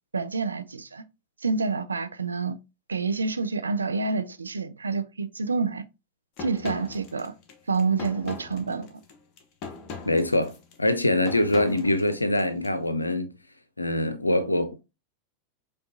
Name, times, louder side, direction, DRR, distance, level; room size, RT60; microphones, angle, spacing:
voice 1, 0.1-1.0 1.4-2.6 2.9-5.8 6.4-7.3 7.7-9.0, right 4 dB, 75° right, 0.3 m, -28 dB
sound 1, 6.4-12.7, left 5 dB, 40° left, 0.8 m, -40 dB
voice 2, 10.0-13.3 13.8-14.8, left 1 dB, 85° left, 0.5 m, -24 dB
5.1 x 2.3 x 2.6 m
figure-of-eight pair, 90°, 0 cm